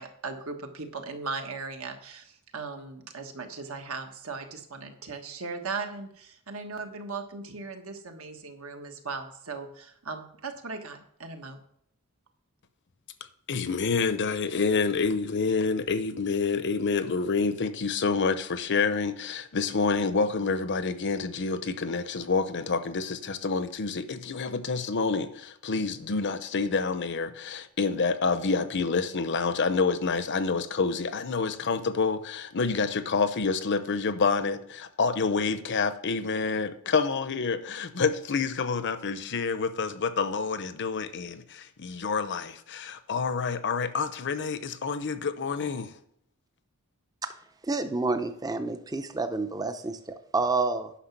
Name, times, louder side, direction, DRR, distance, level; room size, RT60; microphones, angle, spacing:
voice 1, 0.0-11.6, right 4 dB, 70° right, 1.4 m, -38 dB
voice 2, 13.5-45.9, left 4 dB, 55° left, 0.8 m, -28 dB
voice 3, 47.6-50.9, right 3 dB, 15° right, 0.6 m, -29 dB
10.0 x 6.0 x 5.9 m
head